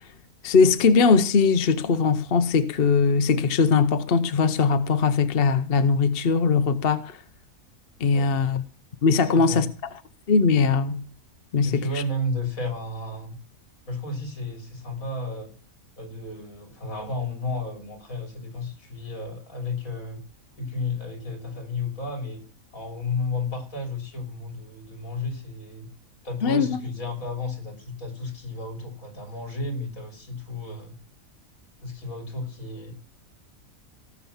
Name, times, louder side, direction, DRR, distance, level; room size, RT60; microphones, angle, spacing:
voice 1, 0.4-7.2 8.0-8.6 9.0-9.7 10.3-11.0 11.5-12.0 26.4-26.8, left 5 dB, 45° left, 1.0 m, -20 dB
voice 2, 9.3-9.6 11.6-13.4 13.9-15.5 16.0-20.2 20.6-22.5 22.7-25.9 26.2-31.0 31.8-32.9, left 2 dB, 70° left, 3.9 m, -32 dB
17.5 x 7.1 x 7.1 m
omnidirectional pair, 1.5 m